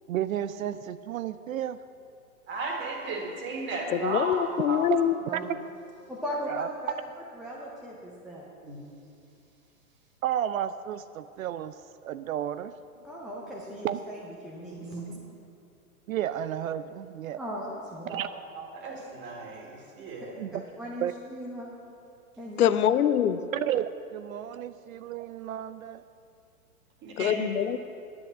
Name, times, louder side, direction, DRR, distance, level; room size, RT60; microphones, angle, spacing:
voice 1, 0.1-1.8 4.9-5.0 5.3-5.6 6.5-6.7 10.2-11.8 12.0-12.7 13.8-14.0 16.1-17.4 18.1-18.3 20.4-20.5 21.0-21.1 23.5-26.0 27.2-27.5, right 11 dB, 65° right, 13 dB, 0.5 m, -32 dB
voice 2, 2.5-4.3 4.6-4.8 8.6-8.8 14.8-15.1 18.1-18.2 18.6-20.3 27.0-27.3, right 3 dB, 25° right, 0 dB, 2.0 m, -35 dB
voice 3, 3.9-5.1 22.6-23.4 27.2-27.8, left 10 dB, 75° left, 13 dB, 0.7 m, -24 dB
voice 4, 6.1-8.5 13.0-15.0 17.4-18.2 20.8-21.7 22.4-22.8, equal, ahead, -6 dB, 0.4 m, -38 dB
10.5 x 7.7 x 7.2 m, 2.5 s
hypercardioid pair, 135°, 45 cm